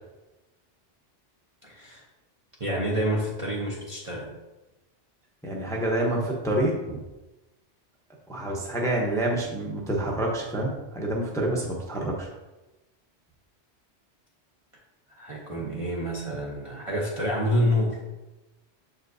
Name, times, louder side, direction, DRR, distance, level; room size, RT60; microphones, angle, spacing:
voice 1, 1.6-2.0 2.6-4.3 15.1-18.0, equal, 30° right, -4 dB, 0.8 m, -28 dB
voice 2, 5.4-7.0 8.3-12.3, right 1 dB, 5° left, -2 dB, 0.8 m, -27 dB
7.1 x 5.1 x 2.7 m, 1.1 s
omnidirectional pair, 1.2 m